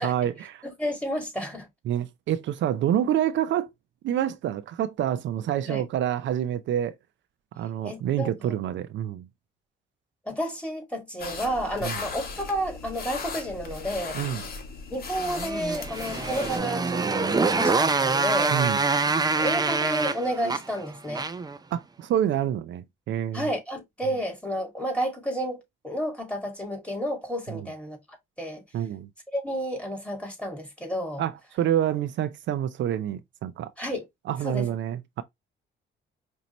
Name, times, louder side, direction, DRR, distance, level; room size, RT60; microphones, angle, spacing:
voice 1, 0.0-0.6 1.9-3.7 4.0-7.0 7.6-9.3 11.8-12.0 14.1-14.4 18.5-18.8 21.7-23.5 27.5-27.6 28.7-29.1 31.2-33.7 34.3-35.2, right 10 dB, 70° right, 0.5 m, -27 dB
voice 2, 0.6-1.7 5.7-5.8 7.8-8.5 10.3-14.2 14.9-18.6 19.4-21.3 23.3-25.6 25.8-28.0 28.4-28.6 29.3-31.2 33.8-34.0 34.4-34.7, equal, 5° left, 2.2 m, -31 dB
sound 1, 11.2-16.6, left 4 dB, 50° left, 1.5 m, -37 dB
Motorcycle, 15.2-21.6, right 4 dB, 20° right, 0.5 m, -25 dB
5.2 x 2.7 x 2.9 m
cardioid pair, 90°, 20 cm